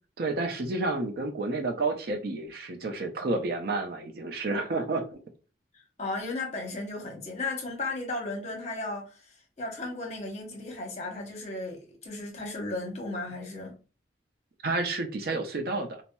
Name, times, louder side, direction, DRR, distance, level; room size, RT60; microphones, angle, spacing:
voice 1, 0.2-5.1 14.6-16.0, right 3 dB, 55° right, 0.5 m, -30 dB
voice 2, 5.7-13.8, left 2 dB, 40° left, 0.9 m, -35 dB
4.1 x 2.0 x 2.2 m
head